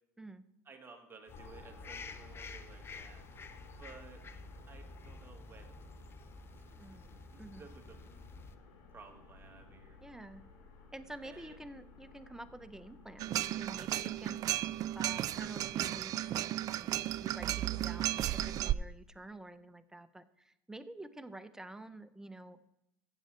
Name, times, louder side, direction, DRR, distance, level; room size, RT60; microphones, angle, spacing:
voice 1, 0.6-3.5 3.8-4.3 4.7-6.1 6.5-6.9 7.3-8.0 8.9-10.0 11.2-11.6, right 4 dB, 25° right, 4 dB, 1.8 m, -56 dB
sound 1, 1.3-15.7, left 4 dB, 70° left, 2.6 m, -57 dB
sound 2, 1.3-8.6, left 3 dB, 25° left, 0.8 m, -50 dB
voice 2, 6.8-7.1 7.4-7.7 10.0-10.4 10.9-14.4 14.9-16.4 16.8-22.6, right 2 dB, 5° right, 12 dB, 0.6 m, -49 dB
sound 3, 13.2-18.7, right 13 dB, 45° right, 0.3 m, -34 dB
15.0 x 7.9 x 3.3 m, 0.83 s
hypercardioid pair, 95°, 9 cm